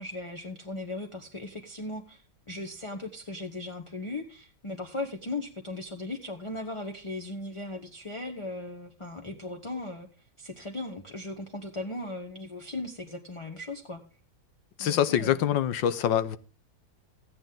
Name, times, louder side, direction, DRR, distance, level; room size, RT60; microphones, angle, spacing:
voice 1, 0.0-10.1 10.4-14.0 14.8-15.5, left 2 dB, 20° left, 3 dB, 0.9 m, -38 dB
voice 2, 14.8-16.4, left 10 dB, 85° left, 13 dB, 1.5 m, -25 dB
15.0 x 9.0 x 3.8 m, 0.38 s
omnidirectional pair, 2.0 m